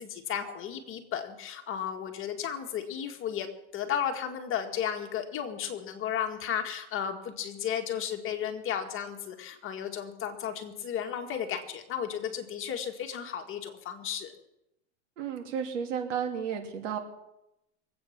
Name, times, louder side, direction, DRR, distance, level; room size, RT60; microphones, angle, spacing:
voice 1, 0.0-3.5 3.7-14.3, left 9 dB, 35° left, 4 dB, 2.1 m, -34 dB
voice 2, 15.2-17.0, right 7 dB, 80° right, 3 dB, 3.0 m, -32 dB
23.5 x 8.5 x 6.0 m, 0.88 s
supercardioid pair, 125°, 37 cm